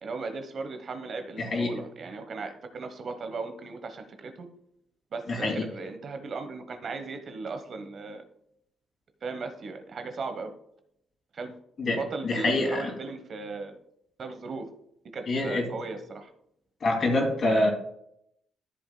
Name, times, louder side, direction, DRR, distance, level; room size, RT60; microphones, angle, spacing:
voice 1, 0.0-4.5 5.1-8.2 9.2-10.5 11.3-11.6 12.0-13.8 14.2-14.7 15.1-16.3, right 4 dB, 50° right, 7 dB, 1.1 m, -37 dB
voice 2, 1.4-1.7 5.3-5.6 11.8-12.0 12.2-12.9 15.3-15.7 16.8-17.7, left 2 dB, 50° left, 1 dB, 2.7 m, -25 dB
13.5 x 7.5 x 2.2 m, 0.74 s
cardioid pair, 90°, 0 cm